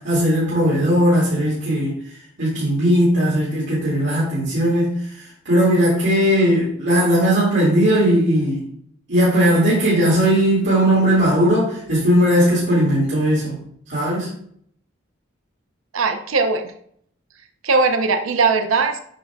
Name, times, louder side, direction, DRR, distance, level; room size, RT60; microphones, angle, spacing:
voice 1, 0.0-2.0 2.4-8.6 9.1-13.6 13.9-14.3, equal, 60° right, -9 dB, 2.3 m, -18 dB
voice 2, 15.9-16.7 17.6-19.0, right 4 dB, 85° right, 6 dB, 0.7 m, -19 dB
7.6 x 5.3 x 2.3 m, 0.65 s
head